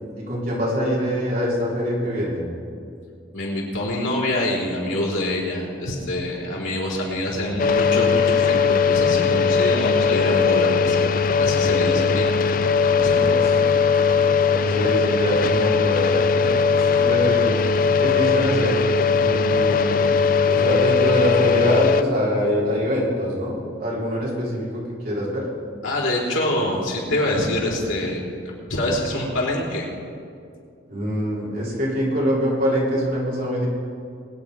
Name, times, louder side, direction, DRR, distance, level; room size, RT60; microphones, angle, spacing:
voice 1, 0.2-2.4 11.8-12.1 13.4-13.5 14.6-16.5 17.0-17.6 17.9-18.8 19.1-20.2 20.5-25.4 30.9-33.7, equal, 45° right, -5 dB, 3.8 m, -24 dB
voice 2, 3.3-12.3 12.8-13.5 16.8-17.0 25.8-28.2 28.7-29.9, left 1 dB, 85° left, -3 dB, 3.9 m, -25 dB
sound 1, 7.6-22.0, left 5 dB, 45° left, 0.4 m, -19 dB
22.0 x 9.2 x 5.0 m, 2.4 s
head